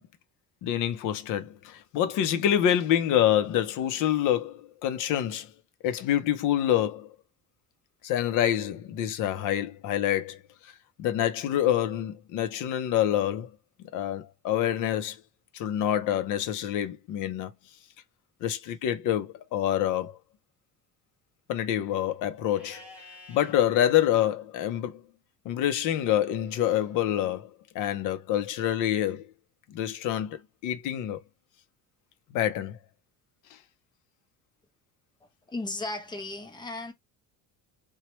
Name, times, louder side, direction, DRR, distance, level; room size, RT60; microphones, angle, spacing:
voice 1, 0.6-5.5 5.8-7.1 8.0-10.4 11.0-13.5 13.9-15.2 15.5-17.5 18.4-20.2 21.5-22.8 23.3-25.0 25.4-27.5 27.7-29.3 29.7-31.2 32.3-32.8, left 11 dB, 55° left, 0.6 m, -26 dB
Livestock farm animals working animals, 22.5-23.5 26.4-27.4, left 2 dB, 5° right, 1.0 m, -51 dB
voice 2, 35.2-36.9, left 2 dB, 10° left, 0.5 m, -36 dB
3.0 x 2.2 x 3.0 m
cardioid pair, 170°, 37 cm